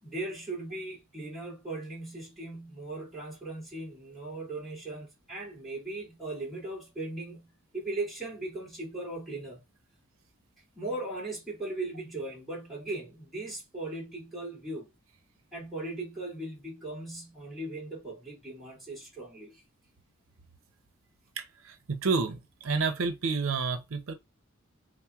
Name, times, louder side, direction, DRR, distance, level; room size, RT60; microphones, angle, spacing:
voice 1, 0.0-9.6 10.7-14.9 15.5-19.6, right 2 dB, ahead, 2.2 m, -38 dB
voice 2, 21.4-24.1, right 4 dB, 85° right, 0.6 m, -30 dB
5.7 x 2.1 x 2.3 m
head